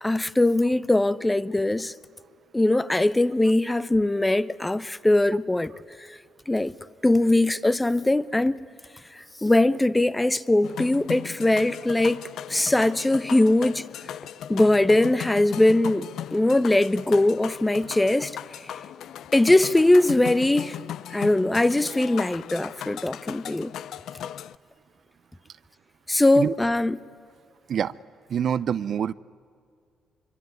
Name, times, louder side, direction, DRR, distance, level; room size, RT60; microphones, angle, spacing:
voice 1, 0.0-1.9 2.5-5.7 6.5-6.7 7.0-8.6 9.4-12.2 12.5-13.8 14.5-18.3 19.3-20.8 21.1-23.7 26.1-27.0, left 1 dB, 10° left, 0.8 m, -21 dB
sound 1, 10.6-24.6, left 10 dB, 75° left, 0.6 m, -37 dB
voice 2, 28.3-29.1, right 8 dB, 60° right, 0.6 m, -25 dB
25.0 x 23.5 x 9.5 m
cardioid pair, 90°, 0 cm